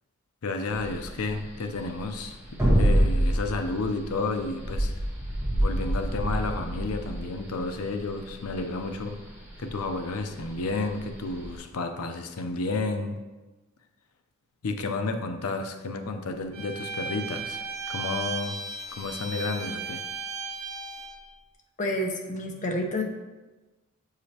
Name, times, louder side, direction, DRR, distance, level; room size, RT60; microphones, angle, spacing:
voice 1, 0.4-2.4 2.8-4.9 5.6-9.2 9.6-13.2 14.6-18.6 18.9-20.0, left 3 dB, 80° left, 6 dB, 0.6 m, -31 dB
sound 1, 0.7-11.5, right 1 dB, 10° right, 1.3 m, -27 dB
Bowed string instrument, 16.5-21.2, right 4 dB, 90° right, 1.1 m, -35 dB
voice 2, 21.8-23.0, left 1 dB, 35° left, 2 dB, 0.7 m, -29 dB
7.3 x 4.9 x 2.8 m, 1.2 s
head